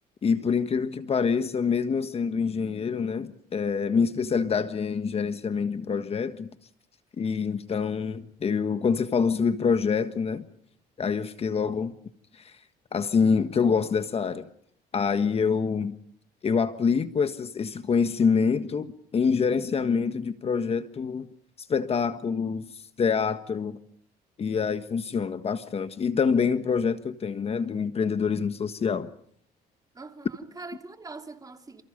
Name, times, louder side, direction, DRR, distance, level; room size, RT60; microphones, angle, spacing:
voice 1, 0.2-6.5 7.2-10.4 11.0-11.9 12.3-12.6 12.9-14.5 14.9-15.9 16.4-21.3 21.7-22.7 23.0-23.8 24.4-29.1, left 5 dB, 35° left, 1.5 m, -26 dB
voice 2, 29.9-31.8, right 3 dB, 20° right, 2.9 m, -43 dB
29.5 x 28.5 x 5.2 m
cardioid pair, 110°, 17 cm